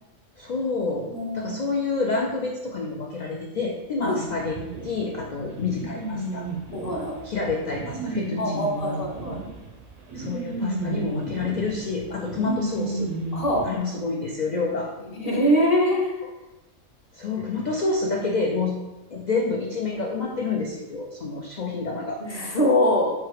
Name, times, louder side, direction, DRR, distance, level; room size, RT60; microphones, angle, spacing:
voice 1, 0.4-4.6 4.8-6.5 7.2-8.7 10.1-13.1 13.6-14.9 17.1-18.8 19.1-22.2, left 4 dB, 85° left, 0 dB, 0.4 m, -28 dB
voice 2, 1.1-1.5 4.0-4.2 5.4-5.5 6.7-7.2 8.4-9.4 13.3-13.6 15.0-16.1 22.2-23.1, equal, 35° left, -1 dB, 0.7 m, -23 dB
sound 1, 4.6-13.7, right 2 dB, 55° right, 0.4 m, -32 dB
4.4 x 2.4 x 4.7 m, 1.0 s
omnidirectional pair, 1.4 m